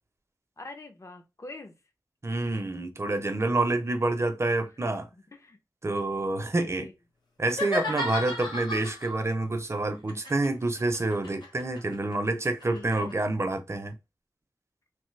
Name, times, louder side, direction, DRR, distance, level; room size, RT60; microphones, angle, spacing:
voice 1, 0.6-1.7 4.8-5.6 6.6-6.9 12.6-13.1, left 2 dB, 40° left, 0.7 m, -45 dB
voice 2, 2.2-5.1 5.8-6.9 7.4-14.0, right 2 dB, 40° right, 0.6 m, -28 dB
sound 1, 7.5-9.2 10.1-13.1, left 2 dB, 75° left, 0.9 m, -34 dB
3.2 x 2.0 x 3.2 m
wide cardioid pair, 60°, 7 cm